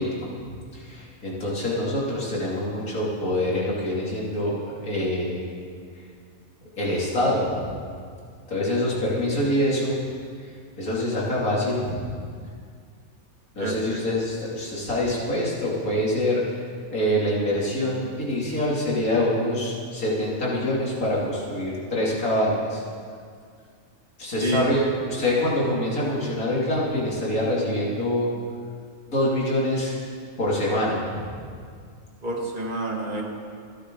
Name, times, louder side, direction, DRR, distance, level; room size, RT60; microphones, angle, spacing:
voice 1, 0.0-5.5 6.8-7.7 8.5-10.0 10.8-12.2 13.6-16.6 16.9-22.8 24.2-28.3 29.1-30.0 30.4-31.5, left 1 dB, 75° left, -5 dB, 3.4 m, -25 dB
voice 2, 13.6-14.0 24.4-24.6 32.2-33.2, right 1 dB, 35° right, -1 dB, 2.1 m, -28 dB
29.0 x 9.7 x 3.9 m, 2.2 s
omnidirectional pair, 1.5 m